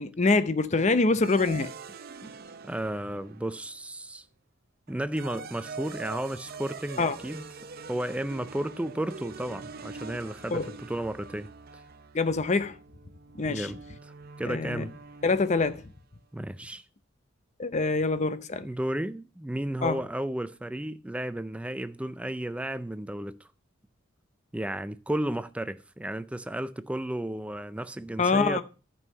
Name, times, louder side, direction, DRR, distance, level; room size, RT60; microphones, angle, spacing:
voice 1, 0.0-1.7 2.2-2.3 7.0-7.1 10.5-10.7 12.1-12.8 13.3-13.7 14.4-14.8 15.2-15.8 17.6-18.7 19.8-20.0 28.2-28.6, left 3 dB, 35° left, 0.6 m, -25 dB
sound 1, 1.2-3.8 4.9-16.0, right 4 dB, 50° right, 0.6 m, -44 dB
voice 2, 2.6-4.2 4.9-7.4 7.9-11.5 13.5-14.1 14.4-14.9 16.3-16.8 18.6-23.4 24.5-28.6, right 1 dB, 5° right, 0.4 m, -33 dB
11.0 x 5.5 x 5.5 m
head